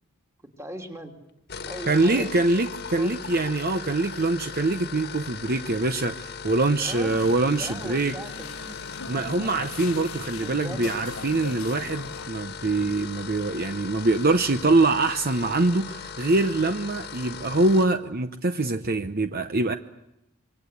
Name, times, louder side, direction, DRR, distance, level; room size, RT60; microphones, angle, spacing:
voice 1, 0.6-1.1 1.7-2.3 3.0-3.2 6.8-7.2 7.5-8.7 9.3-9.5 10.4-10.9, right 1 dB, 15° right, 4 dB, 2.8 m, -38 dB
sound 1, 1.4-17.9, left 6 dB, 50° left, 1.6 m, -39 dB
voice 2, 1.9-8.2 9.1-19.7, right 2 dB, 45° right, 9 dB, 0.9 m, -24 dB
sound 2, 7.1-12.3, left 4 dB, 70° left, 1.0 m, -41 dB
25.5 x 24.0 x 8.3 m, 0.87 s
head